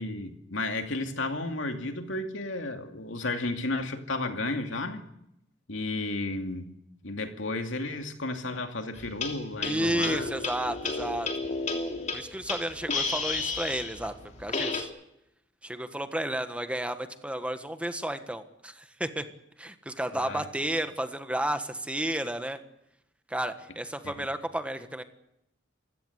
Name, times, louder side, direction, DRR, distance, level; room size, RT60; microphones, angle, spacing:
voice 1, 0.0-5.0 5.7-6.8 7.0-10.3 20.1-20.4 24.0-24.3, left 2 dB, 75° left, 2.5 m, -33 dB
sound 1, 9.0-14.8, left 3 dB, 40° left, 3.0 m, -32 dB
voice 2, 9.6-11.3 12.1-14.1 14.4-14.9 15.6-19.2 19.6-22.6 23.3-25.0, right 1 dB, 5° right, 1.4 m, -32 dB
27.5 x 16.5 x 8.1 m
head